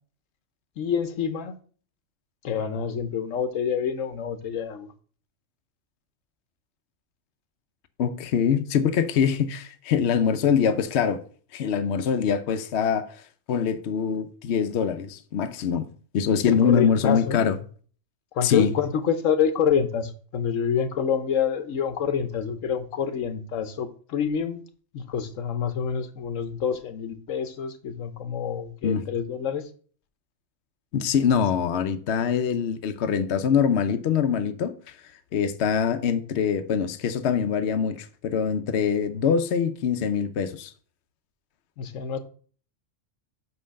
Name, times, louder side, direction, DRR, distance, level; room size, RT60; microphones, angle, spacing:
voice 1, 0.8-1.5 2.4-4.9 16.4-17.4 18.3-24.6 24.9-29.6 41.8-42.2, left 7 dB, 85° left, 1.2 m, -27 dB
voice 2, 8.0-11.2 11.5-13.1 13.5-15.9 16.1-17.6 18.4-18.7 28.8-29.0 30.9-35.0 35.3-40.7, left 7 dB, 65° left, 0.9 m, -24 dB
5.6 x 5.4 x 6.4 m
omnidirectional pair, 1.3 m